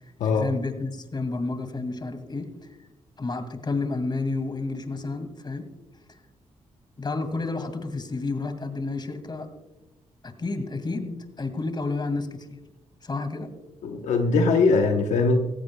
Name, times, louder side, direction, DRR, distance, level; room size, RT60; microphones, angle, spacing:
voice 1, 0.2-2.5 3.2-5.7 6.1-6.2 7.0-9.5 10.2-12.6 13.0-13.5, left 3 dB, 40° left, 8 dB, 2.1 m, -30 dB
voice 2, 13.8-15.4, left 3 dB, 90° left, 4 dB, 1.0 m, -21 dB
16.5 x 15.0 x 2.3 m, 1.0 s
cardioid pair, 60°, 12 cm